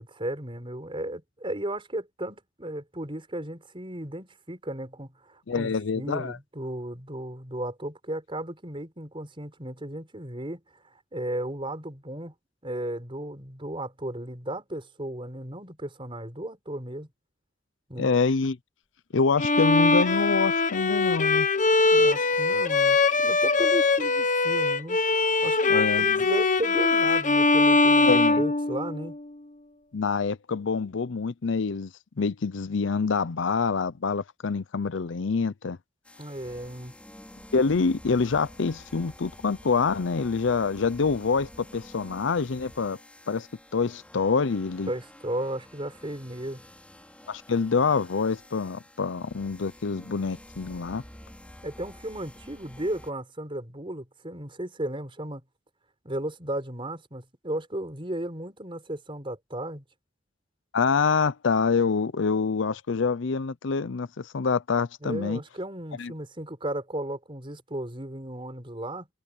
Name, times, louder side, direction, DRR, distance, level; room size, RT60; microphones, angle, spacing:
voice 1, 0.0-10.6 11.1-12.3 12.6-17.1 17.9-18.1 21.9-25.0 25.4-29.2 36.2-36.9 44.9-46.6 51.6-55.4 56.0-59.8 65.0-69.1, right 1 dB, 30° right, 4.8 m, -35 dB
voice 2, 5.5-6.4 18.0-18.6 19.1-21.5 25.7-26.2 28.0-28.4 29.9-31.9 32.2-35.8 37.5-43.0 43.3-43.5 43.7-44.9 47.3-51.0 60.7-65.4 66.0-66.1, left 5 dB, 75° left, 0.6 m, -26 dB
Bowed string instrument, 19.4-29.2, left 3 dB, 40° left, 1.1 m, -22 dB
sound 1, 36.0-53.1, left 1 dB, 5° left, 5.5 m, -49 dB
head